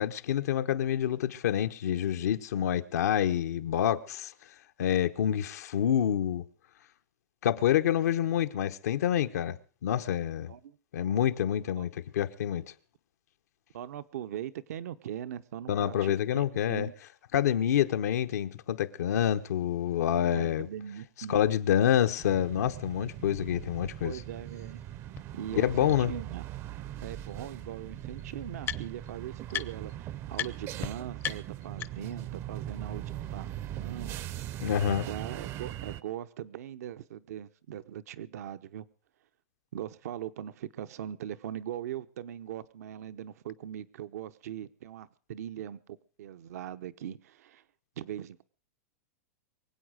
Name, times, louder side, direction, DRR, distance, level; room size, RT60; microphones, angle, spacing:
voice 1, 0.0-4.3 4.8-6.4 7.4-9.6 9.8-10.5 10.9-12.6 15.7-16.9 17.3-20.7 21.3-24.1 25.5-26.1 34.6-35.1, left 10 dB, 80° left, 1.0 m, -27 dB
voice 2, 13.7-16.9 20.4-21.4 24.0-24.8 25.3-26.4 27.0-34.2 34.8-38.8 39.7-47.6 48.0-48.4, right 10 dB, 75° right, 0.8 m, -40 dB
sound 1, 22.2-36.0, right 12 dB, 35° right, 0.6 m, -40 dB
sound 2, 25.2-25.3 25.9-26.0 27.3-27.4 27.6-29.1 29.5-30.0 30.3-30.5 30.8-30.9 31.2-32.2, left 11 dB, 25° left, 0.6 m, -37 dB
23.5 x 8.1 x 6.4 m
supercardioid pair, 140°, 9 cm